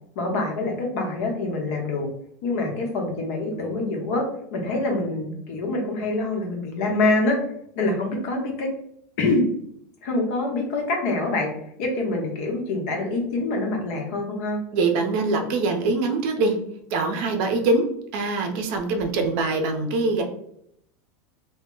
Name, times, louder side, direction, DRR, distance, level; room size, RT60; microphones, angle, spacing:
voice 1, 0.1-2.1 2.4-4.3 4.5-7.4 7.7-8.7 9.2-9.4 10.0-14.6, left 2 dB, 60° left, 1 dB, 0.9 m, -25 dB
voice 2, 14.7-16.6 16.9-17.9 18.1-20.2, right 3 dB, 55° right, 4 dB, 0.5 m, -23 dB
2.2 x 2.0 x 3.6 m, 0.71 s
supercardioid pair, 145°, 8 cm